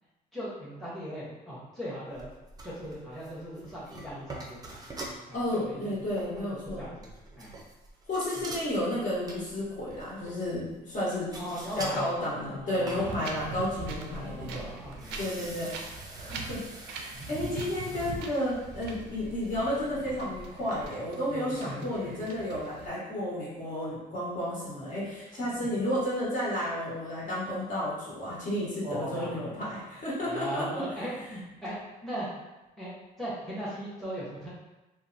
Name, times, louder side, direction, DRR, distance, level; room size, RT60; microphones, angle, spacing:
voice 1, 0.3-2.3 2.6-4.8 5.3-5.9 6.7-7.1 7.4-7.6 8.4-8.5 11.3-12.1 12.4-13.4 14.1-15.9 16.3-16.4 17.1-17.3 21.3-22.1 25.3-25.7 28.8-29.6 30.3-32.3 32.8-32.9 33.2-34.5, equal, ahead, -9 dB, 0.8 m, -39 dB
sound 1, 2.1-5.5 5.9-12.0 12.3-20.9, right 2 dB, 20° right, 0.4 m, -45 dB
voice 2, 5.3-6.9 8.1-11.5 11.8-14.7 15.2-30.8, left 1 dB, 50° left, -8 dB, 1.3 m, -32 dB
Wind, 13.0-22.9, right 5 dB, 85° right, 0.4 m, -42 dB
2.9 x 2.0 x 2.5 m, 1.0 s
cardioid pair, 110°, 17 cm